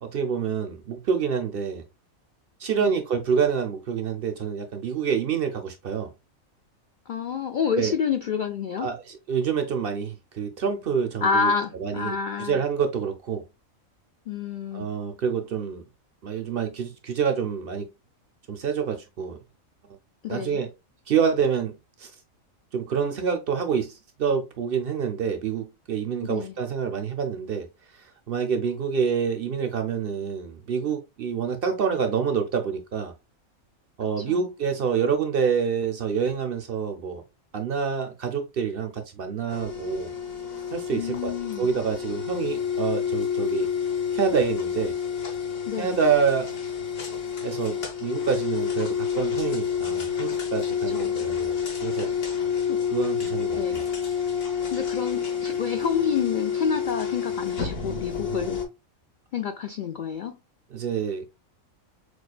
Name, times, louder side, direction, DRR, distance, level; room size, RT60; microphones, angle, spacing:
voice 1, 0.0-1.8 2.6-6.1 7.8-7.9 8.8-13.4 14.7-15.8 16.2-17.9 18.5-19.4 20.3-20.7 21.1-22.1 22.7-27.7 27.9-33.1 34.0-37.2 37.5-40.1 40.7-41.3 41.6-43.7 44.1-44.9 45.8-46.5 47.4-51.5 51.8-52.1 52.9-53.8 60.7-61.4, right 6 dB, 60° right, 0.6 m, -27 dB
voice 2, 7.1-8.9 11.2-12.6 14.3-14.9 20.2-20.6 26.2-26.5 34.2-34.4 40.9-41.7 45.7-46.0 50.9-51.2 52.7-52.8 53.5-53.8 54.7-58.6 59.3-60.3, left 6 dB, 85° left, 0.4 m, -28 dB
sound 1, 39.5-58.6, left 7 dB, 50° left, 1.2 m, -29 dB
6.1 x 2.4 x 2.3 m
omnidirectional pair, 1.4 m